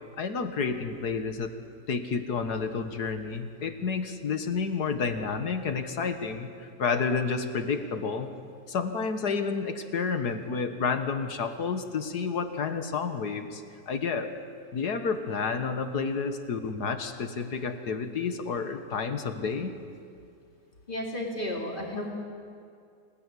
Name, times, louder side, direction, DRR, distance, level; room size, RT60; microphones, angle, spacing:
voice 1, 0.2-1.5 1.9-8.3 8.7-14.3 14.7-19.7, left 5 dB, 70° left, 7 dB, 2.0 m, -30 dB
voice 2, 20.9-22.1, left 1 dB, 30° left, -1 dB, 4.1 m, -33 dB
26.5 x 18.5 x 9.9 m, 2.4 s
omnidirectional pair, 1.8 m